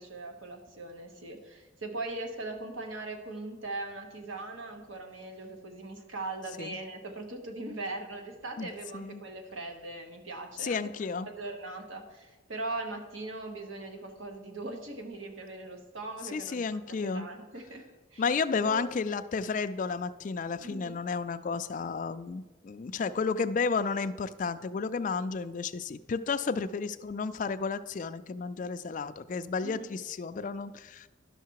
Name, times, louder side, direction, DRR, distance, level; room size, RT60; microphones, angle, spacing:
voice 1, 0.0-10.9 11.2-18.2 18.6-19.1 20.6-21.0 29.6-29.9, right 2 dB, 70° right, 4 dB, 1.2 m, -40 dB
voice 2, 8.6-9.2 10.6-11.3 16.3-17.3 18.2-31.1, left 5 dB, 40° left, 11 dB, 0.3 m, -32 dB
11.5 x 5.7 x 4.7 m, 1.2 s
head